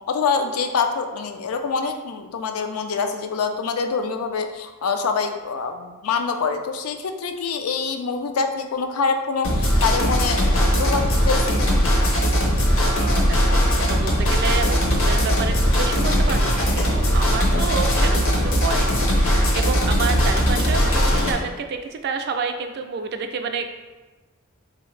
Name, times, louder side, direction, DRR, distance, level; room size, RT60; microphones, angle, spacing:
voice 1, 0.1-11.8, left 5 dB, 80° left, 6 dB, 0.4 m, -25 dB
sound 1, 9.4-21.3, equal, 65° left, 0.9 m, -19 dB
voice 2, 12.8-13.6 13.9-23.7, right 5 dB, 50° right, 6 dB, 0.3 m, -29 dB
4.1 x 2.7 x 3.1 m, 1.2 s
head